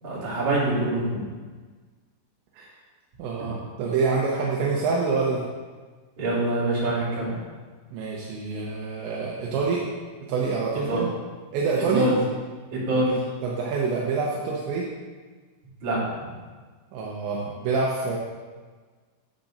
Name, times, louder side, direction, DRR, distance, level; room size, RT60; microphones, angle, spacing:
voice 1, 0.0-1.2 6.2-7.3 10.7-11.0 11.9-12.2 12.7-13.2 15.8-16.0, right 2 dB, 45° right, -8 dB, 3.4 m, -25 dB
voice 2, 3.2-5.4 7.9-9.9 10.3-11.1 11.5-12.1 12.9-13.0 13.4-14.9 16.9-18.2, right 4 dB, 80° right, -3 dB, 2.9 m, -26 dB
13.0 x 7.3 x 2.6 m, 1.4 s
omnidirectional pair, 5.8 m